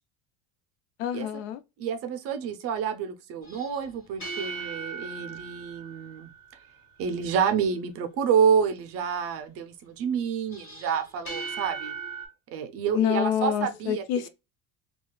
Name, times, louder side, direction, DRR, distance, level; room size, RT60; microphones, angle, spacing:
voice 1, 1.0-1.6 12.9-14.3, left 10 dB, 80° left, 0.6 m, -27 dB
voice 2, 1.8-6.3 7.0-11.9 12.5-14.3, right 7 dB, 40° right, 0.5 m, -28 dB
sound 1, 3.4-6.9 10.5-12.3, right 4 dB, 35° left, 1.9 m, -38 dB
3.8 x 2.3 x 2.2 m
cardioid pair, 165°, 38 cm